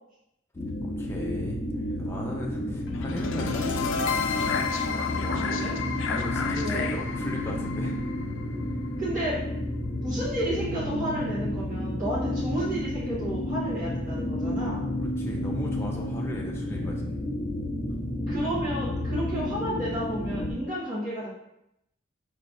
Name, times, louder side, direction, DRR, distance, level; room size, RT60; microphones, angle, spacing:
sound 1, 0.5-20.5, left 1 dB, 30° left, 0.9 m, -31 dB
voice 1, 0.8-1.6 2.0-4.0 5.1-5.6 6.1-8.0 15.0-17.2, equal, 15° left, -2 dB, 0.5 m, -37 dB
voice 2, 2.6-2.9 5.3-5.7 6.6-6.9 9.0-9.4 9.9-14.8 18.3-21.3, right 1 dB, 40° right, -10 dB, 1.4 m, -31 dB
sound 2, 2.9-8.9, left 5 dB, 70° left, 0.4 m, -31 dB
4.9 x 3.3 x 2.6 m, 0.82 s
head